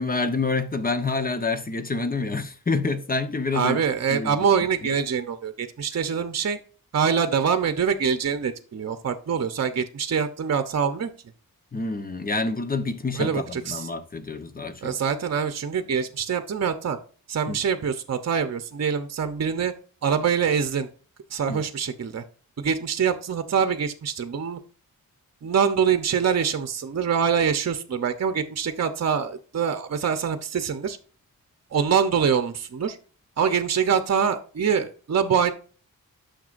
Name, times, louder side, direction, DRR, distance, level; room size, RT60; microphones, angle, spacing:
voice 1, 0.0-3.8 4.1-4.4 11.7-14.9 17.5-17.6 21.5-21.6, left 3 dB, 25° left, 1.0 m, -27 dB
voice 2, 3.5-6.6 6.9-11.1 13.1-13.9 14.8-17.0 17.3-19.7 20.0-20.9 21.3-22.2 22.6-24.6 25.4-31.0 31.7-33.0 33.4-35.5, right 7 dB, 50° right, 0.8 m, -24 dB
9.2 x 6.7 x 2.5 m
wide cardioid pair, 140°, 35 cm